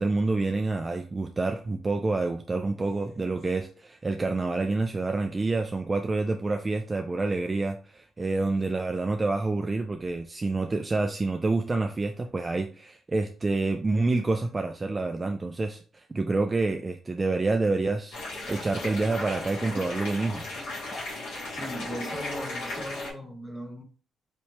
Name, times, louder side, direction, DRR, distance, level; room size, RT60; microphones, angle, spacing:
voice 1, 0.0-18.2 18.5-20.4, right 3 dB, 25° right, 0.4 m, -28 dB
sound 1, 18.1-23.1, left 2 dB, 85° left, 2.1 m, -36 dB
voice 2, 21.5-23.8, equal, ahead, 0.9 m, -38 dB
4.1 x 2.8 x 3.2 m
cardioid pair, 90°, 0 cm